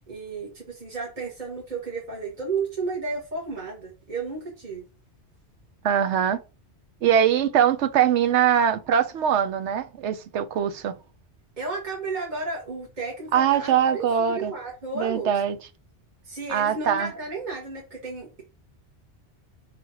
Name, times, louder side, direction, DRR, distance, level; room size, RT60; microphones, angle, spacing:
voice 1, 0.0-4.8 11.6-15.3 16.2-18.4, right 3 dB, 45° right, 1.4 m, -33 dB
voice 2, 5.8-6.4 7.0-11.0 13.3-14.5 15.0-15.6 16.5-17.1, right 9 dB, 90° right, 1.0 m, -22 dB
5.2 x 3.3 x 2.9 m
omnidirectional pair, 1.1 m